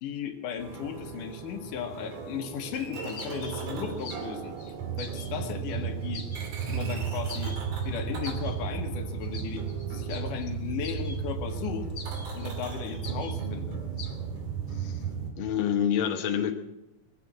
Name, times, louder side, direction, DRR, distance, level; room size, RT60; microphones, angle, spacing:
voice 1, 0.0-6.3 6.7-11.9 12.3-13.8, left 7 dB, 75° left, 6 dB, 2.7 m, -36 dB
sound 1, 0.6-15.3, right 7 dB, 70° right, 3.7 m, -34 dB
sound 2, 3.1-4.3 4.6-5.4 5.7-5.8 6.1-6.9 7.2-7.9 8.2-8.6 9.2-11.2 11.6-12.5 13.0-13.5 14.0-14.2, left 4 dB, 35° left, 1.4 m, -44 dB
voice 2, 15.4-16.5, left 9 dB, 50° left, 3 dB, 1.6 m, -27 dB
21.5 x 8.0 x 7.3 m, 0.94 s
omnidirectional pair, 3.8 m